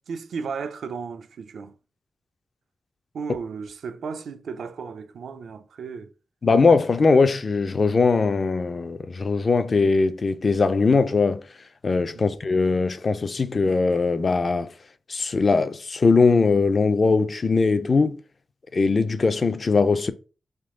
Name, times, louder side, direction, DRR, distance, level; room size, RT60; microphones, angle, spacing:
voice 1, 0.0-1.7 3.1-6.1 12.1-12.3, right 5 dB, 80° right, 0.4 m, -34 dB
voice 2, 6.4-11.5 11.8-14.7 15.1-18.2 18.7-20.1, left 4 dB, 35° left, 0.4 m, -20 dB
3.5 x 3.0 x 3.7 m
wide cardioid pair, 155°, 0 cm